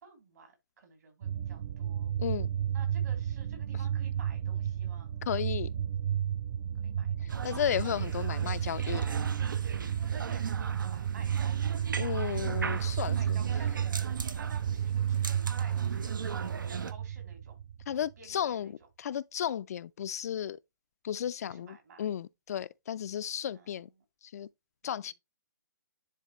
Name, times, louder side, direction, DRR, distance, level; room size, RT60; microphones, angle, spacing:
voice 1, 0.0-2.1 2.7-5.1 6.8-7.5 10.1-11.8 12.7-17.6 18.2-18.7 21.5-22.1 23.5-23.8 24.8-25.1, right 5 dB, 60° right, 2.8 m, -52 dB
sound 1, 1.2-18.0, right 9 dB, 40° right, 0.4 m, -32 dB
voice 2, 2.2-2.5 5.3-5.7 7.4-9.0 12.0-13.4 17.9-18.7 19.0-20.6 21.0-23.9 24.2-24.5 24.8-25.1, left 9 dB, 50° left, 0.4 m, -34 dB
sound 2, 7.3-16.9, right 5 dB, 85° right, 0.8 m, -40 dB
10.0 x 3.5 x 3.0 m
hypercardioid pair, 150°, 10 cm